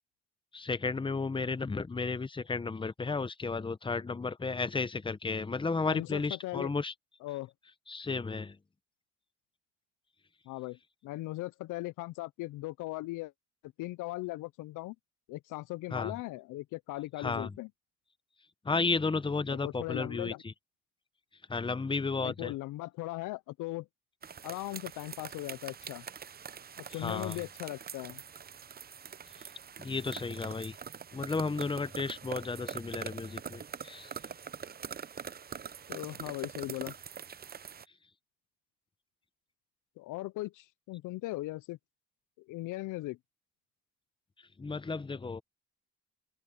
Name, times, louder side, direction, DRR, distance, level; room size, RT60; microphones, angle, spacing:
voice 1, 0.5-6.9 7.9-8.6 15.9-16.1 17.2-17.5 18.6-20.5 21.5-22.5 26.9-27.4 29.4-29.5 29.8-30.8 31.1-34.1 44.6-45.4, left 4 dB, 15° left, 0.8 m, -33 dB
voice 2, 5.8-6.7 7.2-7.5 10.5-13.3 13.8-15.0 15.3-17.7 19.5-20.4 22.2-23.9 24.4-26.1 26.8-28.2 35.9-36.9 40.0-41.8 42.5-43.2, left 18 dB, 85° left, 0.5 m, -38 dB
sound 1, 24.2-37.8, right 7 dB, 30° right, 0.6 m, -44 dB
open air
cardioid pair, 90°, 30 cm